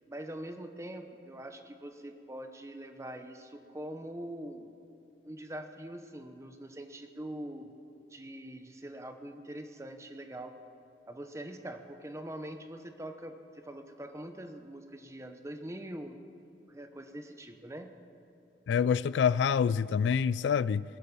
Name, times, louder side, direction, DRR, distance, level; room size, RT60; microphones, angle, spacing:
voice 1, 0.1-4.7 5.2-7.7 8.1-10.6 11.1-16.2 16.7-18.0, right 1 dB, 15° right, 7 dB, 0.9 m, -43 dB
voice 2, 18.7-20.8, left 7 dB, 85° left, 19 dB, 0.3 m, -26 dB
20.5 x 12.0 x 5.4 m, 2.7 s
head